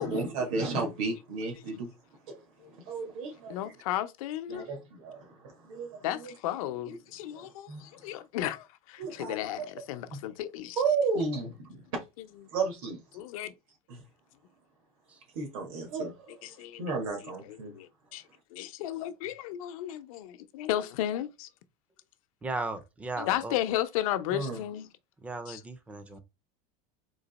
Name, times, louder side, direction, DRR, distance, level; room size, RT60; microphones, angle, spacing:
voice 1, 0.0-1.9 2.3-2.4 2.7-3.7 4.5-6.3 7.3-7.8 9.0-9.7 10.1-10.2 10.8-11.8 12.5-13.0 13.9-14.0 15.3-16.4 16.8-17.7 24.3-24.6, right 4 dB, 80° right, 1.7 m, -33 dB
voice 2, 3.5-4.7 6.0-10.8 13.1-13.5 16.4-17.0 17.5-18.2 18.5-21.5 23.2-24.9 25.5-25.6, left 12 dB, 80° left, 0.7 m, -34 dB
voice 3, 22.4-23.5 25.2-26.2, right 3 dB, 10° right, 0.4 m, -36 dB
3.9 x 2.9 x 4.0 m
supercardioid pair, 170°, 18 cm